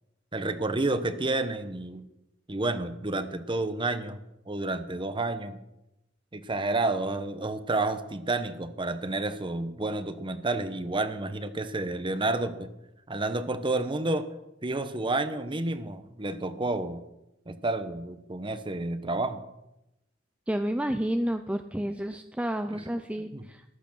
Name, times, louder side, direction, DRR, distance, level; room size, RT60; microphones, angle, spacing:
voice 1, 0.3-2.0 2.5-4.2 4.5-5.6 6.3-12.7 13.1-14.3 14.6-17.0 17.5-19.4 22.7-22.9 23.3-23.4, right 2 dB, 25° right, 11 dB, 1.0 m, -30 dB
voice 2, 20.5-23.6, equal, 5° right, 8 dB, 0.5 m, -30 dB
14.0 x 11.0 x 6.3 m, 0.91 s
head